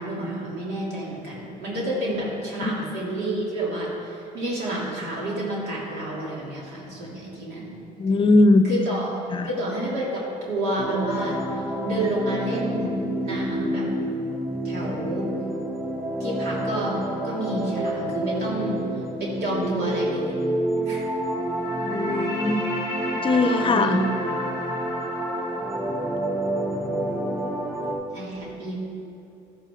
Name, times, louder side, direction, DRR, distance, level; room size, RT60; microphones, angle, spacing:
voice 1, 0.0-7.7 8.6-11.4 11.8-12.9 13.2-13.9 14.6-15.3 16.2-18.8 19.2-20.4 20.8-21.1 23.3-24.0 24.3-24.4 28.1-28.8, right 1 dB, 75° right, -5 dB, 3.0 m, -29 dB
voice 2, 8.0-8.6 9.3-9.5 21.8-22.6 23.1-24.0, left 2 dB, 30° left, 9 dB, 0.7 m, -20 dB
sound 1, 10.8-27.9, right 1 dB, 20° right, 2.9 m, -28 dB
12.5 x 11.0 x 3.8 m, 2.6 s
cardioid pair, 110°, 17 cm